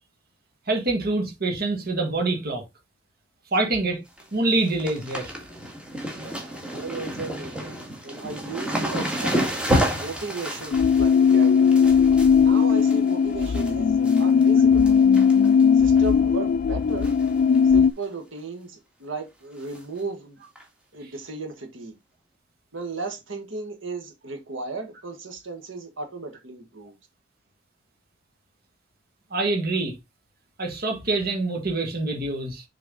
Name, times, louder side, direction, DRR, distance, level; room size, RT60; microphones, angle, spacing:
voice 1, 0.7-2.6 3.5-4.0 4.3-5.3 29.3-29.9 30.6-32.6, right 2 dB, 50° right, 1.6 m, -25 dB
sound 1, 3.9-4.2 4.5-13.7 14.0-14.5 14.8-15.6 16.0-16.1 17.0-17.3 17.5-17.6 18.0-18.1 19.7-19.8 20.6-20.7, equal, 5° right, 1.9 m, -30 dB
voice 2, 6.2-9.5 9.9-11.8 12.3-15.0 15.7-17.1 17.6-20.4 20.9-21.9 22.7-26.9, right 3 dB, 80° right, 1.7 m, -35 dB
sound 2, 10.7-17.9, left 6 dB, 45° left, 0.3 m, -18 dB
6.6 x 4.6 x 3.7 m
head